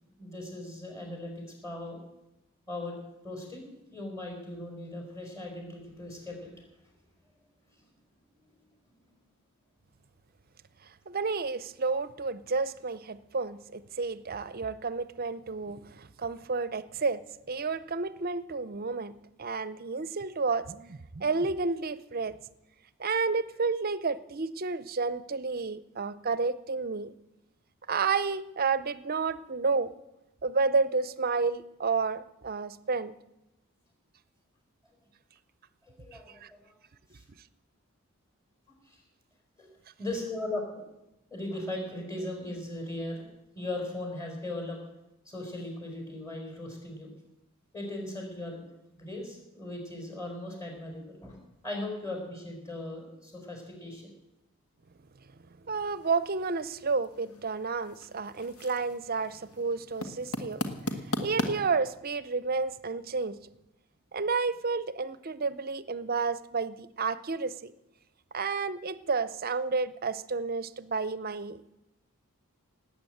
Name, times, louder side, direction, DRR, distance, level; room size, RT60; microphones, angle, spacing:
voice 1, 0.2-2.0 2.7-3.0 3.2-6.5 7.7-7.8 8.9-9.0 35.8-36.7 37.1-37.2 38.9-39.0 39.6-39.7 40.0-40.8 41.3-43.2 43.5-44.8 45.2-47.1 47.7-48.6 48.9-51.4 51.6-54.1, left 1 dB, 15° left, 2 dB, 4.5 m, -38 dB
voice 2, 11.1-19.1 19.4-22.4 23.0-27.1 27.9-29.9 30.4-33.1 36.4-36.5 55.6-60.6 61.1-63.4 64.1-67.7 68.3-71.6, right 4 dB, 45° right, 15 dB, 0.6 m, -31 dB
sound 1, 55.7-61.5, left 1 dB, 80° left, 1.6 m, -38 dB
18.5 x 8.8 x 7.9 m, 0.91 s
head